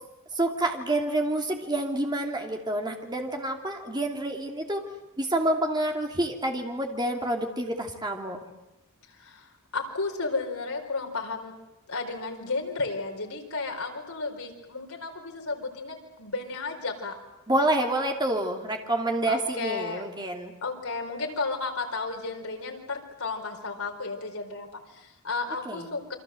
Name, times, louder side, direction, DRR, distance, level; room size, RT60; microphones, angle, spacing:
voice 1, 0.3-4.8 5.2-8.4 17.5-20.5 25.7-25.9, right 1 dB, 20° right, 3 dB, 2.8 m, -28 dB
voice 2, 9.1-11.5 11.9-17.2 19.3-20.0 20.6-26.1, left 3 dB, 70° left, 2 dB, 4.6 m, -33 dB
28.5 x 24.0 x 7.8 m, 0.95 s
head